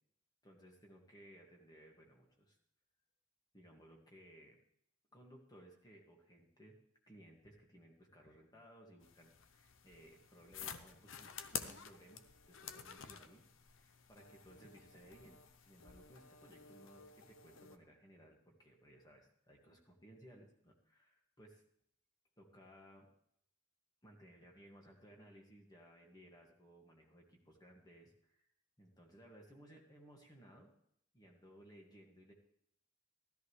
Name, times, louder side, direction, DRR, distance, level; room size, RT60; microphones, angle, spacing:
voice 1, 0.4-2.6 3.5-4.6 5.1-6.8 7.1-21.6 22.4-23.1 24.0-28.5 28.8-30.7 31.1-32.3, equal, 20° left, 0 dB, 2.0 m, -61 dB
sound 1, 9.0-17.8, left 7 dB, 70° left, 0.7 m, -51 dB
13.5 x 13.0 x 3.2 m, 0.71 s
head